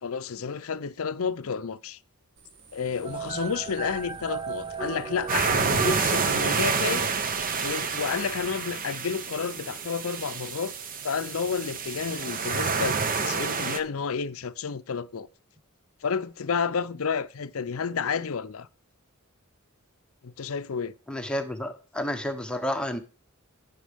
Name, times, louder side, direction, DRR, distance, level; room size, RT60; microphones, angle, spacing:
voice 1, 0.0-2.0 2.7-7.1 7.6-10.7 11.0-15.3 16.0-18.7 20.2-20.9, left 6 dB, 65° left, 0.6 m, -31 dB
sound 1, 2.4-7.7, right 4 dB, 55° right, 1.9 m, -52 dB
sound 2, 3.0-8.5, right 5 dB, 20° right, 0.4 m, -36 dB
sound 3, 5.3-13.8, right 5 dB, 40° right, 0.8 m, -28 dB
voice 2, 21.1-23.0, left 1 dB, 5° left, 0.9 m, -30 dB
11.5 x 9.2 x 3.5 m
head